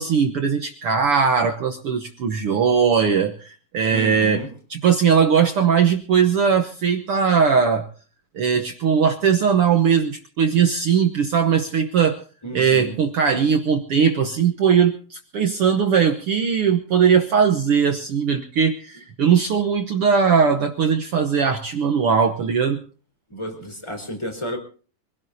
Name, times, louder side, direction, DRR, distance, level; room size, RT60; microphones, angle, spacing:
voice 1, 0.0-4.4 4.7-7.9 8.3-12.2 12.5-22.8, right 6 dB, 75° right, 6 dB, 1.3 m, -19 dB
voice 2, 3.9-4.5 12.4-13.0 23.3-24.6, right 1 dB, 10° left, 5 dB, 4.0 m, -31 dB
25.0 x 17.0 x 2.7 m, 0.40 s
omnidirectional pair, 4.0 m